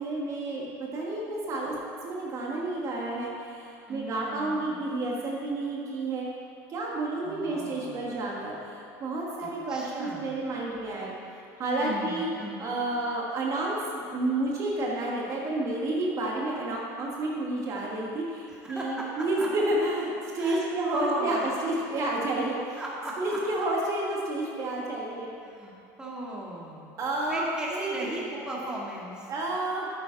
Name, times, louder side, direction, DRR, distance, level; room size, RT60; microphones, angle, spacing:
voice 1, 0.0-6.3 6.7-11.1 11.6-12.3 12.6-22.8 23.2-25.3 27.0-28.1 29.3-29.9, right 2 dB, 40° right, -3 dB, 1.7 m, -30 dB
voice 2, 3.9-4.8 7.2-8.1 9.4-10.3 11.8-12.6 18.5-19.5 20.4-21.5 22.8-23.4 25.4-26.9 27.3-29.3, right 1 dB, 10° right, -4 dB, 1.8 m, -37 dB
9.2 x 9.0 x 4.0 m, 2.6 s
supercardioid pair, 115°, 8 cm